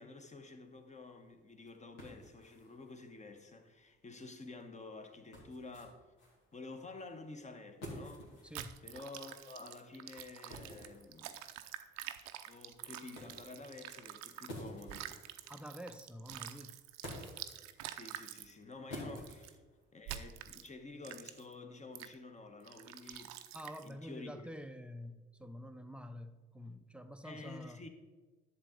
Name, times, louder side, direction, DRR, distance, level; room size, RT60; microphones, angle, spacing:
voice 1, 0.0-6.0 6.5-8.5 8.8-11.4 12.4-15.1 17.9-19.6 19.9-23.6 23.8-24.5 27.2-27.9, left 3 dB, 25° left, 1.3 m, -50 dB
sound 1, 0.6-20.2, equal, 75° left, 2.5 m, -53 dB
voice 2, 8.4-8.8 15.5-16.8 19.1-19.2 23.5-27.9, equal, 5° right, 0.7 m, -48 dB
sound 2, 8.5-14.5 14.8-18.5 19.2-19.5 20.1-20.7 21.0-21.5 22.0-22.1 22.7-23.9, right 12 dB, 65° right, 0.6 m, -47 dB
11.0 x 7.0 x 3.9 m
hypercardioid pair, 50°, 30 cm